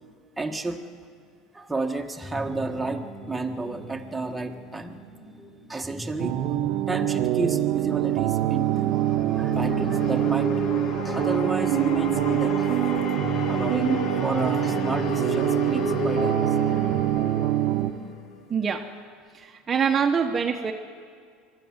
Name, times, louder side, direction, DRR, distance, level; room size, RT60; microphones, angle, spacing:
voice 1, 0.4-1.0 1.5-5.4 5.7-9.0 9.3-10.7 11.0-12.9 13.5-16.6, right 3 dB, 10° right, 2 dB, 1.6 m, -32 dB
sound 1, 2.2-17.0, left 2 dB, 15° left, 4.6 m, -41 dB
sound 2, 6.2-17.9, right 13 dB, 65° right, 1.0 m, -25 dB
sound 3, 8.1-18.4, left 3 dB, 50° left, 1.7 m, -32 dB
voice 2, 18.5-18.8 19.3-20.7, right 6 dB, 30° right, 3 dB, 1.1 m, -24 dB
23.0 x 13.0 x 9.7 m, 2.2 s
supercardioid pair, 110°, 0 cm